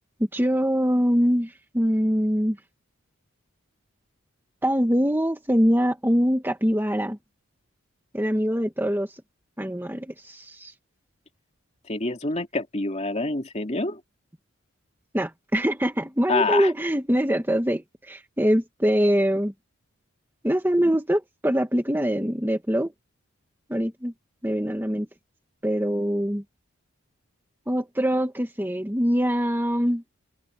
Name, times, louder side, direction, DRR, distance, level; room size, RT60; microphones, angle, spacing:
voice 1, 0.3-2.6 4.6-7.2 8.1-9.1 9.6-10.7 15.1-19.5 20.4-22.9 23.7-24.1 24.4-25.1 25.6-26.4 27.7-30.0, equal, 10° right, 1.9 m, -23 dB
voice 2, 11.9-14.0 16.3-16.7, left 3 dB, 30° left, 2.9 m, -26 dB
head